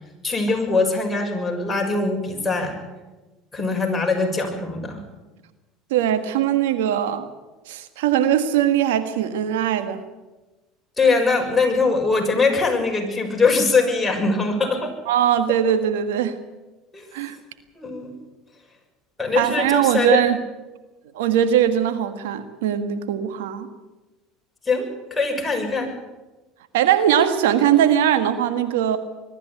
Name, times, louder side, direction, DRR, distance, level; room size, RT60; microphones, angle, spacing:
voice 1, 0.2-2.8 3.5-5.0 11.0-14.9 16.9-17.0 17.8-18.1 19.2-20.2 24.7-25.9, left 3 dB, 15° left, 1 dB, 6.4 m, -22 dB
voice 2, 5.9-7.3 7.7-10.0 15.1-16.4 17.1-17.4 19.3-20.4 21.1-23.7 26.7-29.0, right 10 dB, 85° right, 10 dB, 1.6 m, -20 dB
22.0 x 13.5 x 9.7 m, 1.1 s
supercardioid pair, 95°, 0 cm